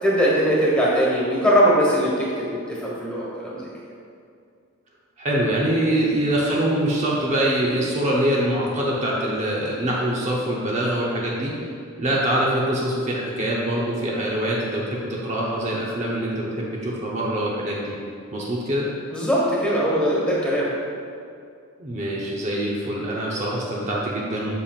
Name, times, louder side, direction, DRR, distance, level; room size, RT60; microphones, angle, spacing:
voice 1, 0.0-3.7 19.1-20.7, equal, 5° left, -7 dB, 1.6 m, -21 dB
voice 2, 5.2-11.5 12.0-18.0 18.3-18.9 21.8-24.5, right 1 dB, 30° right, -5 dB, 0.8 m, -24 dB
8.2 x 7.0 x 2.5 m, 2.3 s
head